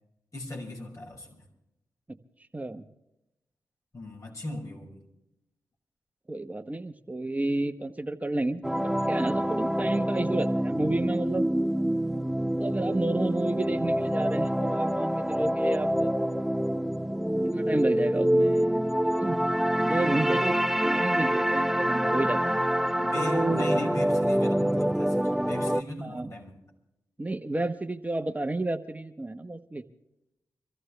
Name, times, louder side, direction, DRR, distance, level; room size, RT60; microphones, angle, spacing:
voice 1, 0.3-1.4 3.9-5.1 22.9-26.5, left 1 dB, 50° left, 1 dB, 5.6 m, -37 dB
voice 2, 2.5-2.9 6.3-11.4 12.6-16.1 17.4-18.9 19.2-19.4 19.8-22.6 23.2-23.7 26.0-26.3 27.2-29.8, right 2 dB, 20° right, 7 dB, 1.1 m, -31 dB
sound 1, 8.6-25.8, equal, 5° right, 0.5 m, -26 dB
25.0 x 14.5 x 3.4 m, 0.88 s
cardioid pair, 45°, 7 cm